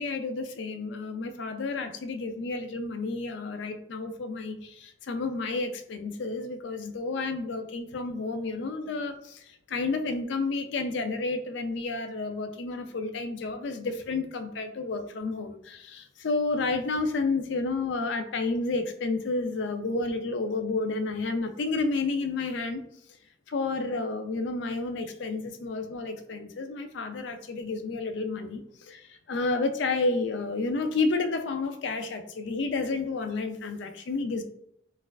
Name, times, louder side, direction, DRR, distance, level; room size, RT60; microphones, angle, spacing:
voice 1, 0.0-22.8 23.5-34.4, left 3 dB, 65° left, 8 dB, 0.4 m, -31 dB
4.2 x 2.4 x 2.3 m, 0.74 s
head